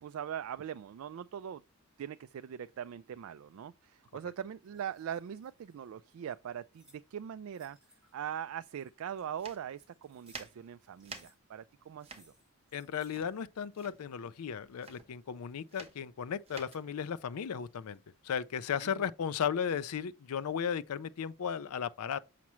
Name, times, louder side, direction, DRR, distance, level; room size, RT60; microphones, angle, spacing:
voice 1, 0.0-1.6 2.0-7.8 8.1-12.3 18.8-19.1, right 9 dB, 65° right, 0.3 m, -41 dB
sound 1, 4.6-7.0 7.5-8.3 8.8-10.6 10.9-11.4 12.0-13.2, equal, 5° right, 3.8 m, -65 dB
sound 2, 9.3-18.6, right 4 dB, 25° right, 1.1 m, -51 dB
voice 2, 12.7-18.0 18.2-22.2, left 7 dB, 80° left, 0.4 m, -35 dB
7.2 x 5.8 x 3.1 m
head